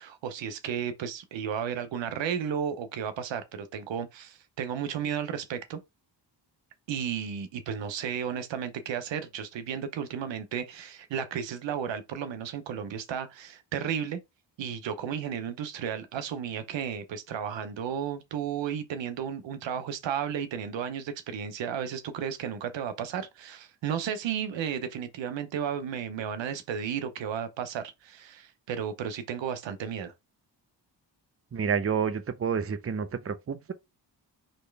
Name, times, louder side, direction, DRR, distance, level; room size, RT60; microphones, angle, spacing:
voice 1, 0.0-5.8 6.9-14.2 14.6-30.1, right 8 dB, 85° right, 0.8 m, -33 dB
voice 2, 31.5-33.7, right 6 dB, 30° right, 0.7 m, -29 dB
4.3 x 3.2 x 3.3 m
cardioid pair, 80°, 43 cm